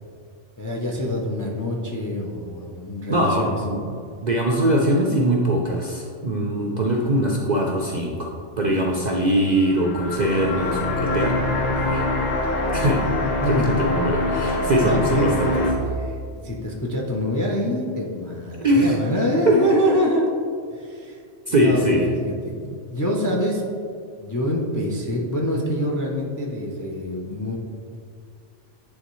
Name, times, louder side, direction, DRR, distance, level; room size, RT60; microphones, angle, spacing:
voice 1, 0.6-3.5 8.7-9.0 13.4-13.8 14.6-15.3 16.3-20.3 20.7-21.2 21.5-23.6 24.2-27.5, equal, 25° left, -1 dB, 0.4 m, -25 dB
voice 2, 3.1-3.8 4.2-8.3 8.6-12.1 12.7-13.0 13.5-15.7 18.6-19.0 19.5-19.6 21.5-22.1, right 1 dB, 50° right, -1 dB, 0.5 m, -22 dB
sound 1, 9.6-15.7, left 2 dB, 85° left, 1.1 m, -24 dB
9.5 x 3.5 x 3.1 m, 2.3 s
omnidirectional pair, 1.3 m